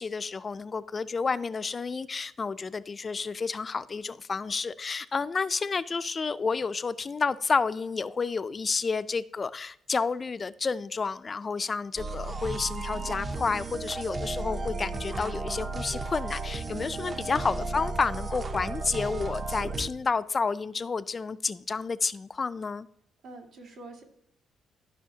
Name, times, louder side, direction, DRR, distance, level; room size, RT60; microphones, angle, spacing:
voice 1, 0.0-22.9, left 4 dB, 35° left, 0.3 m, -30 dB
sound 1, 12.0-19.9, right 3 dB, 35° right, 0.7 m, -34 dB
voice 2, 23.2-24.0, right 2 dB, 75° right, 2.0 m, -46 dB
12.5 x 5.7 x 2.8 m
cardioid pair, 90°, 0 cm